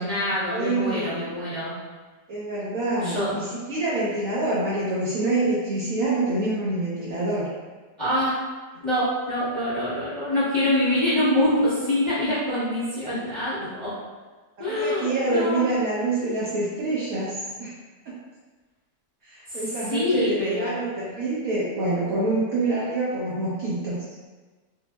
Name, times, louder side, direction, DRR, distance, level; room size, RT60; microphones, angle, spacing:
voice 1, 0.0-1.7 3.0-3.3 8.0-8.4 8.8-13.9 14.6-15.7 19.5-19.6 19.9-20.7, left 1 dB, 20° left, -12 dB, 0.8 m, -25 dB
voice 2, 0.5-1.3 2.3-7.5 14.6-17.7 19.2-24.0, right 2 dB, 65° right, -8 dB, 0.9 m, -26 dB
5.1 x 2.0 x 2.2 m, 1.3 s
omnidirectional pair, 1.9 m